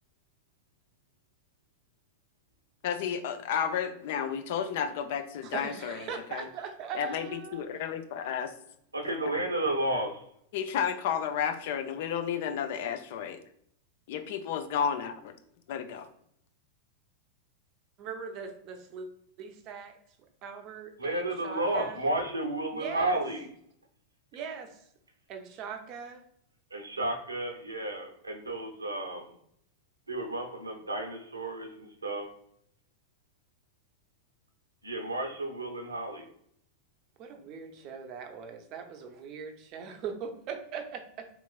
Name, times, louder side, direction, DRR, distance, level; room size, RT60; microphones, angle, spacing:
voice 1, 2.8-6.5 6.9-8.5 9.0-9.3 10.5-13.4 14.1-15.1 15.7-16.1, left 8 dB, 50° left, 8 dB, 0.4 m, -32 dB
voice 2, 5.4-7.6 18.0-19.1 19.4-20.0 20.4-22.0 22.7-23.2 24.3-24.8 25.3-26.2 37.2-41.3, right 6 dB, 40° right, 5 dB, 0.5 m, -40 dB
voice 3, 8.9-10.2 21.0-23.5 26.7-29.2 30.1-32.3 34.8-36.3, right 1 dB, 80° right, 3 dB, 0.6 m, -32 dB
3.6 x 3.0 x 2.3 m, 0.69 s
figure-of-eight pair, 90°, 0 cm